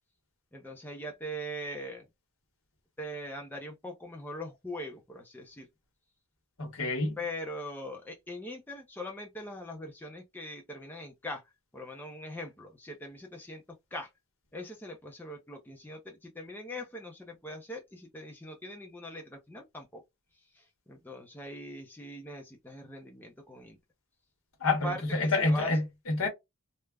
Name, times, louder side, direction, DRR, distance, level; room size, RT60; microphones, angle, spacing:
voice 1, 0.5-2.1 3.0-5.7 7.2-11.4 11.7-13.6 13.9-14.1 14.5-20.0 20.5-23.8 24.6-25.8, equal, 10° left, 0.5 m, -41 dB
voice 2, 6.6-7.2 24.6-26.3, left 3 dB, 70° left, 1.0 m, -28 dB
3.3 x 2.1 x 2.2 m
head